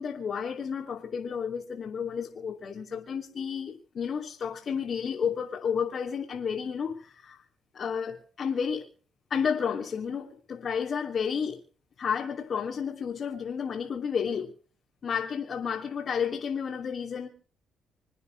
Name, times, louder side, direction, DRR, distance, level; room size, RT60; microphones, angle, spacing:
voice 1, 0.0-7.4 7.7-8.9 9.3-11.6 12.0-14.5 15.0-17.3, left 7 dB, 50° left, 3.2 m, -31 dB
27.5 x 9.6 x 5.5 m
cardioid pair, 90°, 0 cm